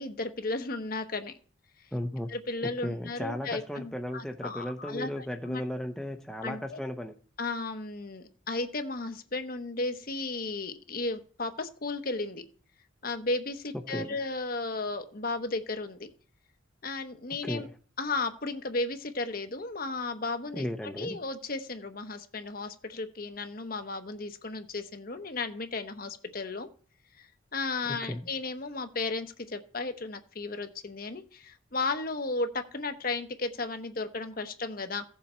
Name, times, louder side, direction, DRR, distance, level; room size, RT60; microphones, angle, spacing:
voice 1, 0.0-1.3 2.3-5.6 6.4-6.8 7.4-12.4 13.0-16.1 16.8-17.7 18.0-26.7 27.1-35.0, left 3 dB, 45° left, 8 dB, 1.0 m, -34 dB
voice 2, 1.9-2.3 2.8-7.1 13.9-14.2 17.4-17.7 20.5-21.2 28.0-28.2, left 1 dB, ahead, 4 dB, 0.7 m, -35 dB
15.5 x 7.1 x 4.4 m, 0.42 s
head